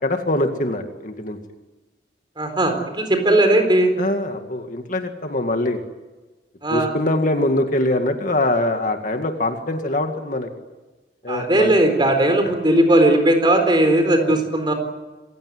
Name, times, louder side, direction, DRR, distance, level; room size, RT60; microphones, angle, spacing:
voice 1, 0.0-1.4 4.0-5.8 6.7-10.5 11.2-11.7 14.0-14.4, left 1 dB, 45° left, 5 dB, 2.1 m, -23 dB
voice 2, 2.4-4.0 6.6-6.9 11.3-14.7, right 1 dB, 25° right, 6 dB, 4.1 m, -17 dB
27.0 x 16.0 x 9.6 m, 1.2 s
head